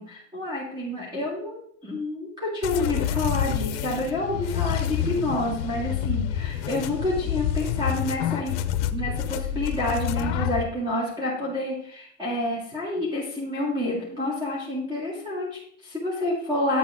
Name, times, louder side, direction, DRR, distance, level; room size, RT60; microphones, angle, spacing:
voice 1, 0.0-8.6 8.9-16.8, left 1 dB, 10° right, -5 dB, 2.0 m, -29 dB
sound 1, 2.6-10.6, left 9 dB, 55° left, 0.6 m, -28 dB
8.4 x 6.7 x 3.5 m, 0.66 s
supercardioid pair, 150°, 35 cm